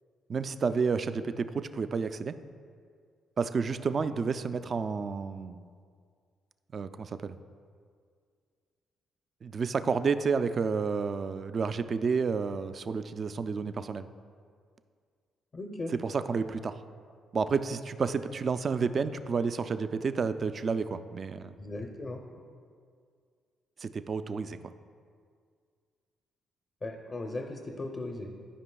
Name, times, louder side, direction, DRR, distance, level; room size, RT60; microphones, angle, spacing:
voice 1, 0.3-2.3 3.4-5.6 6.7-7.3 9.4-14.1 15.9-16.8 17.3-21.5 23.8-24.6, right 5 dB, 45° right, 11 dB, 0.3 m, -30 dB
voice 2, 15.5-15.9 21.6-22.2 26.8-28.3, left 2 dB, 35° left, 3 dB, 0.6 m, -37 dB
13.0 x 5.1 x 2.3 m, 2.1 s
cardioid pair, 90°, 0 cm